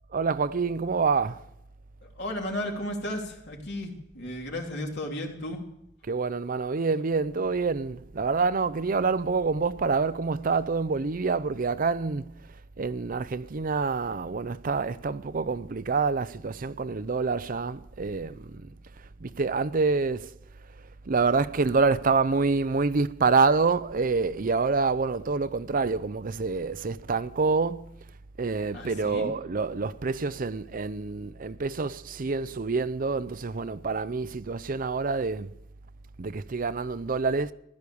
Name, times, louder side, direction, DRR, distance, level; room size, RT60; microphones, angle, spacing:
voice 1, 0.1-1.4 6.0-12.5 12.8-18.7 19.0-20.3 21.1-27.9 28.4-35.5 36.2-37.5, right 4 dB, 50° right, 0.6 m, -27 dB
voice 2, 2.0-5.6 28.7-29.3, left 1 dB, 65° left, 3.1 m, -34 dB
15.5 x 12.0 x 7.0 m
head